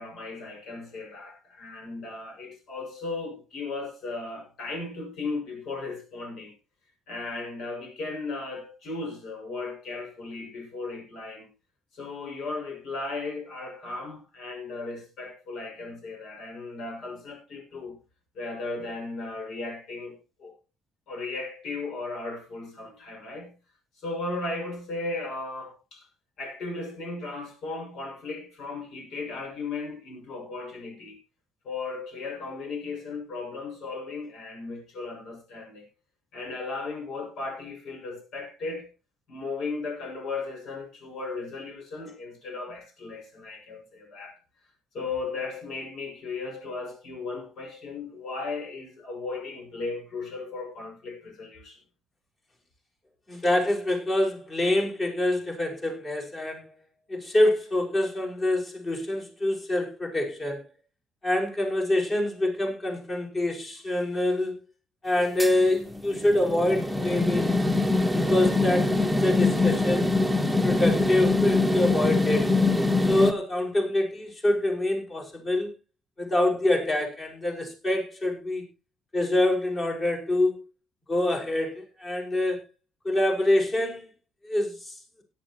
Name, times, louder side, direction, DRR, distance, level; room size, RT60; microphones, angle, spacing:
voice 1, 0.0-6.5 7.1-11.5 11.9-18.0 18.3-20.5 21.1-23.5 24.0-26.1 26.4-31.2 31.6-35.8 36.3-38.9 39.3-44.4 44.9-51.8, left 3 dB, 65° left, 6.3 m, -36 dB
voice 2, 53.3-56.7 57.1-60.6 61.2-64.6 65.0-67.6 68.1-70.1 70.6-72.5 73.1-75.7 76.2-78.6 79.1-80.6 81.1-82.6 83.1-84.1 84.4-85.0, left 1 dB, 30° left, 5.2 m, -26 dB
sound 1, 65.4-73.3, left 2 dB, ahead, 1.2 m, -24 dB
17.5 x 10.5 x 3.0 m
cardioid pair, 130°, 0 cm